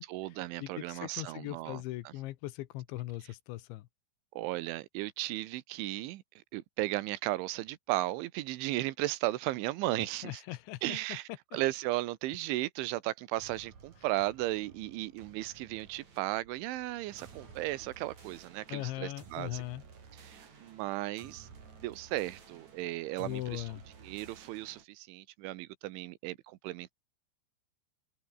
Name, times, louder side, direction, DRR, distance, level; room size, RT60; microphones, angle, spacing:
voice 1, 0.1-1.8 4.3-10.4 10.8-19.6 20.1-21.5 21.8-23.7 24.0-26.9, right 17 dB, 85° right, 3.5 m, -35 dB
voice 2, 0.6-3.9 10.2-11.0 18.7-19.8 23.2-23.8, left 17 dB, 80° left, 3.3 m, -39 dB
sound 1, 13.4-24.8, right 5 dB, 40° right, 4.8 m, -55 dB
sound 2, 17.4-18.8, right 2 dB, 15° right, 4.2 m, -63 dB
omnidirectional pair, 5.4 m